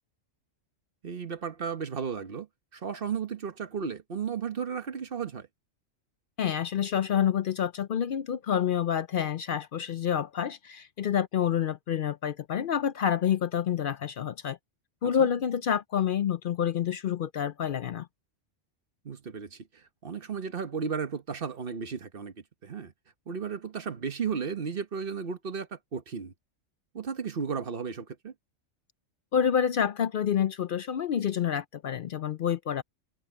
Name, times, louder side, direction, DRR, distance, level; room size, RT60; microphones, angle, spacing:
voice 1, 1.0-2.5 2.7-5.5 15.0-15.3 19.0-22.3 22.6-22.9 23.3-26.3 26.9-28.3, right 6 dB, 45° right, 1.3 m, -34 dB
voice 2, 6.4-14.6 15.0-18.1 29.3-32.8, left 8 dB, 60° left, 0.5 m, -28 dB
omnidirectional pair, 1.3 m